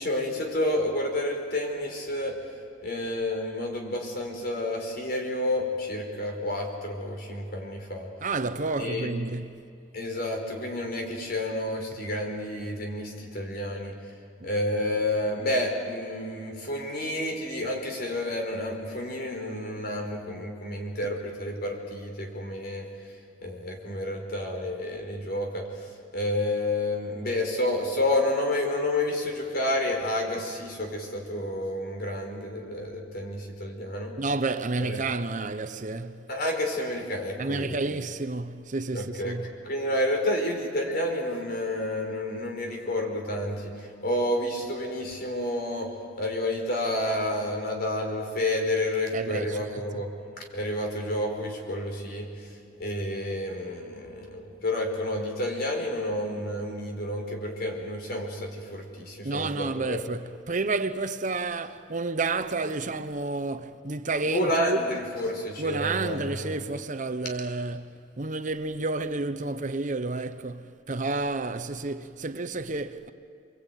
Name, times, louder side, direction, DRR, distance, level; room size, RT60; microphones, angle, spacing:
voice 1, 0.0-2.4 2.8-8.1 8.8-9.1 9.9-13.9 14.4-22.9 23.4-34.2 34.8-35.0 36.3-37.9 38.9-50.1 50.4-52.5 52.8-60.0 64.3-66.5, left 1 dB, 55° left, 4.9 m, -30 dB
voice 2, 8.2-9.7 14.4-14.5 34.2-36.3 37.4-39.5 49.1-50.0 59.2-64.8 65.6-73.1, right 3 dB, 45° right, 1.0 m, -30 dB
29.0 x 22.0 x 9.3 m
head